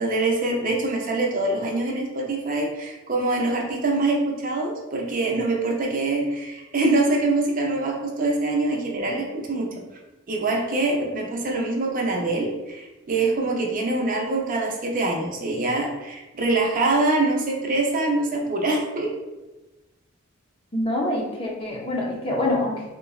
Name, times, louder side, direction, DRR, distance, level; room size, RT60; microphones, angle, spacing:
voice 1, 0.0-9.7 10.3-19.2, right 2 dB, 40° right, 0 dB, 0.5 m, -24 dB
voice 2, 20.7-22.8, left 1 dB, 25° left, -2 dB, 0.5 m, -25 dB
3.7 x 2.1 x 2.3 m, 1.1 s
head